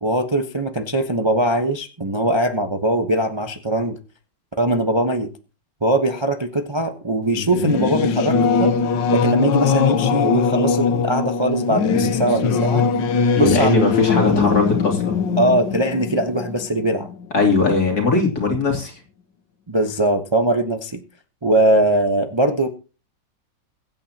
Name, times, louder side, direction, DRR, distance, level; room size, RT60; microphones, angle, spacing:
voice 1, 0.0-4.0 4.6-5.3 5.8-8.7 9.1-12.9 13.4-13.9 14.5-14.6 15.4-17.1 19.7-21.0 21.4-22.7, right 1 dB, 20° right, 4 dB, 0.8 m, -21 dB
Singing / Musical instrument, 7.3-17.4, left 5 dB, 85° left, 1.7 m, -21 dB
voice 2, 13.4-15.2 17.3-19.0, left 3 dB, 55° left, 2 dB, 3.5 m, -19 dB
22.5 x 9.1 x 2.9 m, 0.34 s
omnidirectional pair, 1.9 m